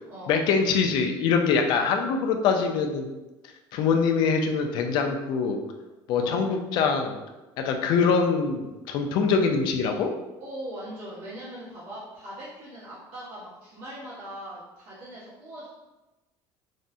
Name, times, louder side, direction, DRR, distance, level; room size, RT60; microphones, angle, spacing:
voice 1, 0.3-3.1 3.7-5.6 6.1-7.2 7.6-10.1, left 5 dB, 50° left, 4 dB, 0.3 m, -24 dB
voice 2, 10.4-15.7, right 1 dB, 75° right, -11 dB, 1.2 m, -40 dB
3.4 x 2.0 x 2.6 m, 1.1 s
cardioid pair, 170°, 10 cm